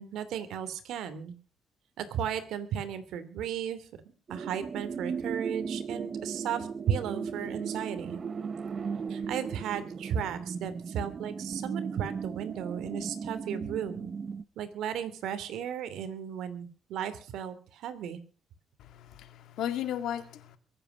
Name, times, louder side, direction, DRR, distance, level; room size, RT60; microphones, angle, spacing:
voice 1, 0.0-1.3 2.0-3.9 4.3-8.2 9.1-14.1 14.6-18.2, right 9 dB, 80° right, 2.9 m, -35 dB
sound 1, 4.3-14.4, right 6 dB, 45° right, 0.8 m, -37 dB
voice 2, 18.8-20.6, left 10 dB, 80° left, 2.2 m, -35 dB
22.5 x 9.0 x 6.2 m
cardioid pair, 90°, 0 cm